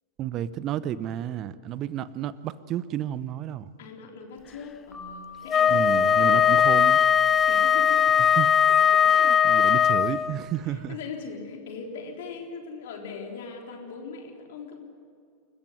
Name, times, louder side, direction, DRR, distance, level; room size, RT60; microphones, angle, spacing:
voice 1, 0.2-3.7 5.7-7.0 8.4-8.5 9.1-11.0, right 11 dB, 35° right, 18 dB, 0.8 m, -31 dB
voice 2, 3.8-6.6 7.5-8.0 8.9-9.3 10.7-14.9, left 5 dB, 55° left, 2 dB, 3.7 m, -40 dB
Piano, 4.9-7.1, left 6 dB, 5° left, 4.1 m, -47 dB
Wind instrument woodwind instrument, 5.5-10.4, left 8 dB, 20° left, 0.6 m, -20 dB
29.0 x 14.5 x 9.7 m, 2.3 s
figure-of-eight pair, 90°, 0 cm